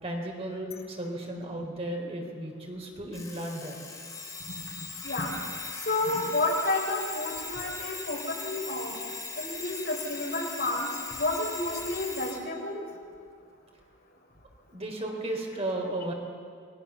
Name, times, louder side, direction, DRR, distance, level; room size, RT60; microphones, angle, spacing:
voice 1, 0.0-3.8 14.7-16.1, right 1 dB, 30° right, 1 dB, 3.9 m, -34 dB
Alarm, 3.1-12.4, left 4 dB, 15° left, 3.4 m, -39 dB
voice 2, 4.4-5.4 5.9-9.0 9.4-12.8, left 2 dB, 50° left, 1 dB, 4.0 m, -31 dB
29.0 x 21.5 x 7.1 m, 2.3 s
head